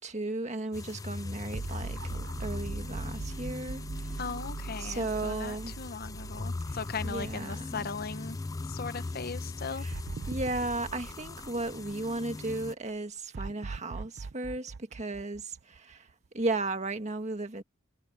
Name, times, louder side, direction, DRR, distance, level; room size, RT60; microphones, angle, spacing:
voice 1, 0.0-4.2 4.8-5.7 6.7-7.9 9.7-10.0 10.3-16.1 16.3-17.6, right 2 dB, 35° right, 1.7 m, -35 dB
sound 1, 0.7-12.7, left 3 dB, 15° left, 0.3 m, -40 dB
sound 2, 1.5-7.9 8.2-8.3 9.9-12.4 13.3-16.1, right 3 dB, 55° right, 0.5 m, -41 dB
voice 2, 4.2-8.4 8.7-9.9, left 5 dB, 50° left, 0.8 m, -38 dB
head